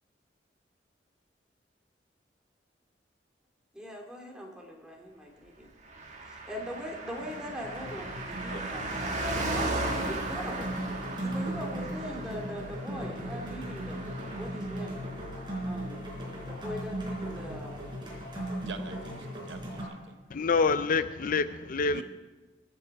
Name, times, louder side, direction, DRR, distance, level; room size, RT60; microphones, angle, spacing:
voice 1, 3.7-5.7 6.3-9.7 10.0-10.7 11.2-14.0 14.4-15.0 15.6-16.0 16.4-18.0 21.9-22.0, equal, 5° right, -1 dB, 2.4 m, -41 dB
Car passing by, 5.8-17.7 17.9-18.0, right 2 dB, 45° right, 1.9 m, -37 dB
sound 1, 6.6-6.9 7.2-19.8, right 1 dB, 25° right, 4.2 m, -38 dB
voice 2, 18.6-20.2 21.9-22.0, right 4 dB, 80° right, 8 dB, 0.9 m, -45 dB
voice 3, 20.3-22.0, left 4 dB, 50° left, 13 dB, 0.5 m, -26 dB
23.5 x 8.0 x 4.6 m, 1.2 s
head